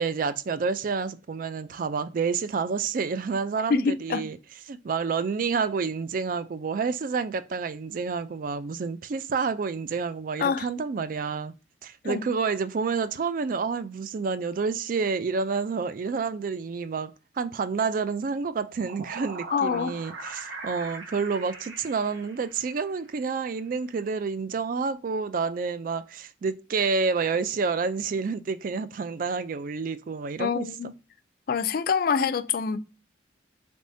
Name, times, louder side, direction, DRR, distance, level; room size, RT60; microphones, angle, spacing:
voice 1, 0.0-4.4 4.7-11.5 11.8-30.9, right 5 dB, 50° right, 0.3 m, -29 dB
voice 2, 3.7-4.3 10.4-10.7 12.0-12.2 19.5-19.9 30.4-30.9 31.5-32.8, left 6 dB, 50° left, 0.3 m, -25 dB
sound 1, 18.5-23.0, right 3 dB, 80° right, 1.2 m, -41 dB
4.1 x 3.5 x 2.6 m
head